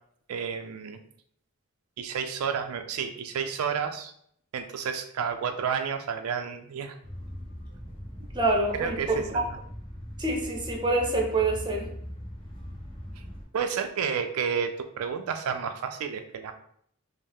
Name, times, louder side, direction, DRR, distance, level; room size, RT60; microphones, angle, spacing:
voice 1, 0.3-1.0 2.0-4.1 4.5-7.0 8.8-9.4 13.5-16.5, right 6 dB, 80° right, 7 dB, 0.4 m, -31 dB
sound 1, 7.0-13.4, equal, 25° left, 1.0 m, -40 dB
voice 2, 8.3-9.4 10.2-11.9, right 2 dB, 20° right, 0 dB, 0.7 m, -26 dB
5.3 x 2.0 x 3.4 m, 0.67 s
head